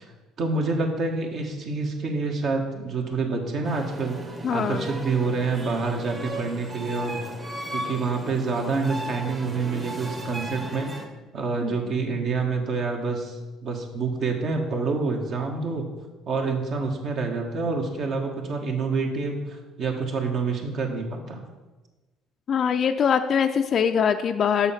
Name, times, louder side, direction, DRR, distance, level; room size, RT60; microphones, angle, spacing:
voice 1, 0.4-4.2 4.5-7.2 7.7-10.9 11.3-15.9 16.3-21.4, right 4 dB, 55° right, 2 dB, 1.5 m, -27 dB
sound 1, 3.6-11.0, right 1 dB, 30° right, 1.4 m, -36 dB
voice 2, 4.4-4.9 11.6-11.8 22.5-24.7, left 7 dB, 50° left, 7 dB, 0.4 m, -23 dB
6.8 x 5.7 x 5.8 m, 1.2 s
supercardioid pair, 75°, 0 cm